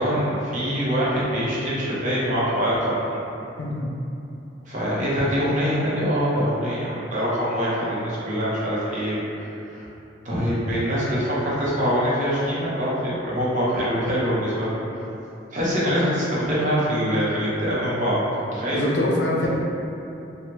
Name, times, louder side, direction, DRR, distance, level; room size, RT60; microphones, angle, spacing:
voice 1, 0.0-3.2 4.7-9.9 10.2-14.7 15.5-18.2 18.5-18.8, equal, 45° right, -8 dB, 0.7 m, -24 dB
voice 2, 18.7-19.5, left 1 dB, 75° left, -3 dB, 0.5 m, -24 dB
2.7 x 2.0 x 3.2 m, 2.8 s
head